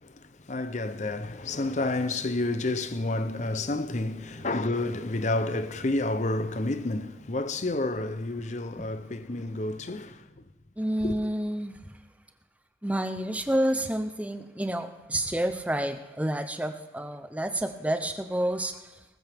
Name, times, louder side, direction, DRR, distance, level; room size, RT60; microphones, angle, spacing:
voice 1, 0.0-10.4 11.0-11.2, left 2 dB, 40° left, 0.7 m, -30 dB
sound 1, 1.4-7.2, right 2 dB, 30° right, 4.3 m, -52 dB
voice 2, 10.8-12.0 12.8-18.9, right 1 dB, 10° right, 0.7 m, -29 dB
19.0 x 14.0 x 3.6 m
head